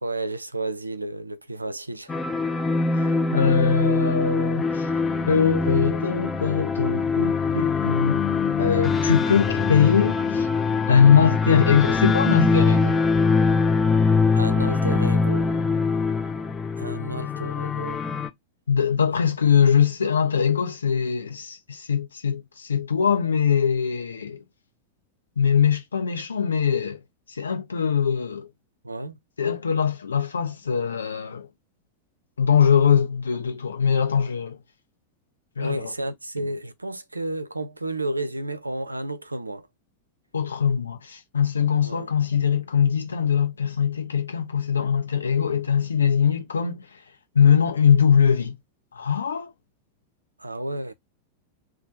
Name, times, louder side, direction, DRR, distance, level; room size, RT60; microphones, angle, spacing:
voice 1, 0.0-2.2 14.4-15.5 16.8-18.0 19.1-19.2 28.8-29.2 35.6-39.7 41.8-42.1 50.4-50.9, right 1 dB, 85° right, 0.3 m, -31 dB
sound 1, 2.1-18.3, left 4 dB, 15° left, 0.4 m, -23 dB
voice 2, 2.9-4.9 5.3-8.3 8.6-10.5 10.9-13.0 18.7-24.4 25.4-27.0 27.3-28.5 29.4-31.5 32.4-34.6 35.6-35.9 40.3-47.0 47.3-48.6 48.9-49.5, left 7 dB, 70° left, 0.7 m, -22 dB
2.8 x 2.2 x 4.0 m
figure-of-eight pair, 90°, 0 cm